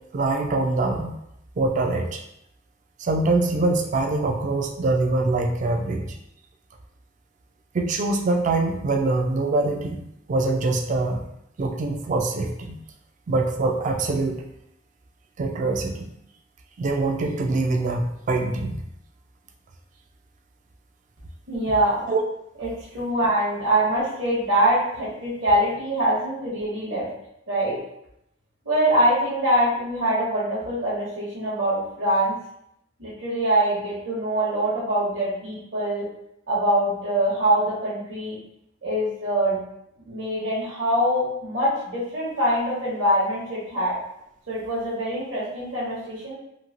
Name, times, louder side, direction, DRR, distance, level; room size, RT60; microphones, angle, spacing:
voice 1, 0.1-1.1 1.6-2.2 3.0-6.2 7.7-10.0 10.3-11.2 11.6-12.8 13.3-14.5 15.4-16.1 16.8-18.8 22.1-22.2, right 2 dB, 40° right, 4 dB, 0.3 m, -24 dB
voice 2, 21.5-22.1 22.6-27.1 27.5-27.8 28.6-32.4 33.0-36.1 36.5-38.4 38.8-39.6 40.0-44.0 44.5-46.3, right 1 dB, 70° right, -8 dB, 1.1 m, -24 dB
3.0 x 2.6 x 2.5 m, 0.78 s
head